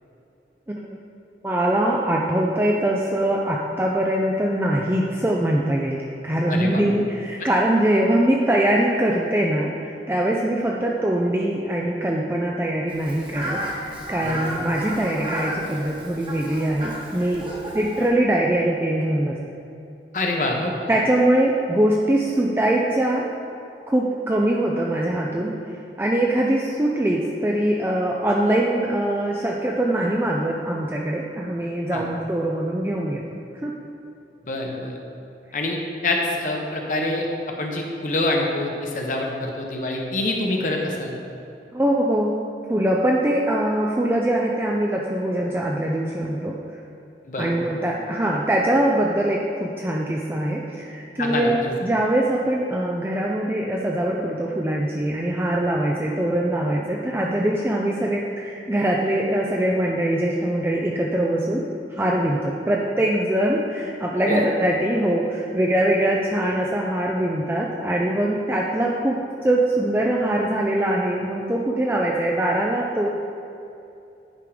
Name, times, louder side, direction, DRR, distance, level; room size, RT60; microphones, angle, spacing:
voice 1, 1.4-17.5 17.7-19.4 20.9-23.3 23.9-25.5 26.0-33.2 33.5-33.7 41.7-42.3 42.7-46.5 47.4-73.1, right 1 dB, 15° right, -2 dB, 0.4 m, -22 dB
voice 2, 6.5-6.8 14.2-14.4 20.1-20.9 31.9-32.0 34.4-35.0 35.5-35.8 36.0-37.3 37.6-41.2 47.3-47.5 51.2-51.7 64.2-64.4, left 2 dB, 45° left, 1 dB, 0.9 m, -26 dB
Fowl, 12.9-18.1, equal, 30° right, 1.1 m, -33 dB
10.0 x 3.7 x 4.9 m, 2.7 s
head